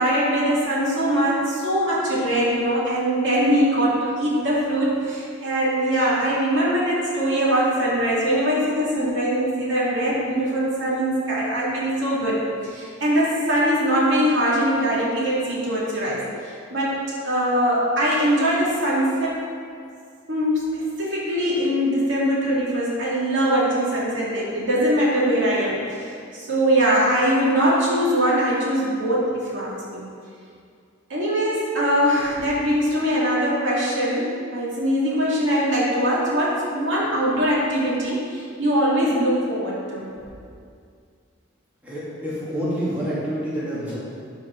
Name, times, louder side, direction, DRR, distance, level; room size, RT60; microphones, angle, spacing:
voice 1, 0.0-16.9 17.2-19.4 20.3-30.0 31.1-40.0, equal, 70° right, -6 dB, 2.5 m, -22 dB
voice 2, 41.8-44.0, equal, 10° right, -10 dB, 2.1 m, -27 dB
12.0 x 5.0 x 4.6 m, 2.3 s
head